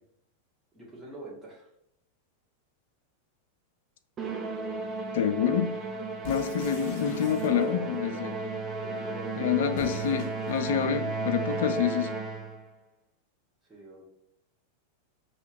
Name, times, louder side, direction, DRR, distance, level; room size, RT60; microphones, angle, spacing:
voice 1, 0.7-1.7 7.4-8.4 8.8-10.2 13.7-14.0, right 2 dB, 5° right, -8 dB, 1.5 m, -44 dB
Musical instrument, 4.2-12.7, right 3 dB, 25° right, 0.5 m, -33 dB
voice 2, 5.1-5.7 6.2-8.3 9.4-12.1, left 9 dB, 55° left, 9 dB, 0.4 m, -27 dB
sound 1, 6.2-8.0 9.7-10.8, left 4 dB, 30° left, 1.3 m, -47 dB
5.6 x 2.9 x 2.6 m, 0.74 s
figure-of-eight pair, 90°, 0 cm